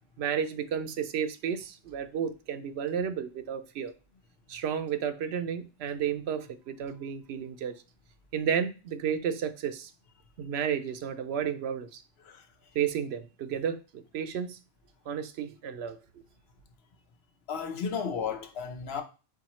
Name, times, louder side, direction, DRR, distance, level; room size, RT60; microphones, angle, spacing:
voice 1, 0.2-3.9 4.5-7.7 8.3-9.9 10.4-12.0 12.7-14.6 15.1-16.0, right 8 dB, 80° right, 0.8 m, -32 dB
voice 2, 12.2-12.5 17.5-19.0, left 6 dB, 75° left, 1.0 m, -34 dB
4.6 x 3.7 x 3.0 m
omnidirectional pair, 1.1 m